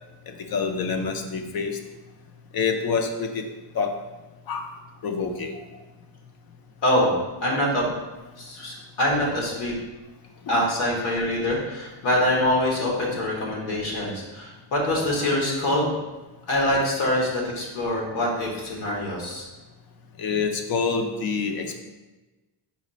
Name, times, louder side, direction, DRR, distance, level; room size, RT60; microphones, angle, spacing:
voice 1, 0.3-1.7 2.5-3.4 3.7-3.9 4.5-4.7 5.0-5.5 20.2-21.8, left 5 dB, 50° left, 5 dB, 0.6 m, -26 dB
voice 2, 6.8-7.1 7.4-8.0 8.4-9.7 10.5-15.9 16.5-19.4, left 1 dB, 85° left, -3 dB, 1.2 m, -24 dB
4.1 x 2.3 x 4.0 m, 1.1 s
cardioid pair, 105°, 47 cm